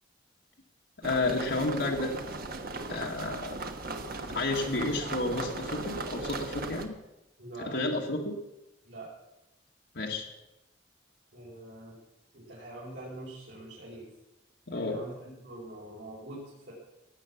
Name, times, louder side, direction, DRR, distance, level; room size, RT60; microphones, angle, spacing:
voice 1, 1.0-2.1 2.9-3.6 4.3-6.9 7.6-8.4 9.9-10.2 14.7-15.0, left 2 dB, 70° left, 0 dB, 1.7 m, -31 dB
sound 1, 1.0-6.9, right 3 dB, 55° right, 1.3 m, -37 dB
voice 2, 7.4-7.8 8.8-9.1 11.3-11.9 12.3-14.1 14.7-16.7, right 2 dB, 90° right, -8 dB, 5.0 m, -44 dB
17.5 x 8.1 x 7.1 m, 0.97 s
head